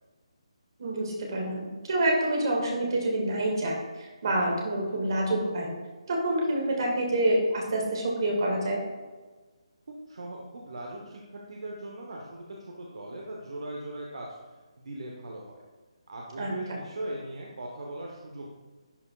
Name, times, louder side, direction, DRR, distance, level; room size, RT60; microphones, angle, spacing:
voice 1, 0.8-5.7 6.1-8.8 16.4-16.8, right 1 dB, 45° right, -1 dB, 2.0 m, -27 dB
voice 2, 10.1-14.3 14.8-15.6 16.1-18.6, right 1 dB, 65° right, -1 dB, 1.1 m, -39 dB
11.5 x 4.5 x 2.4 m, 1.3 s
hypercardioid pair, 165°, 3 cm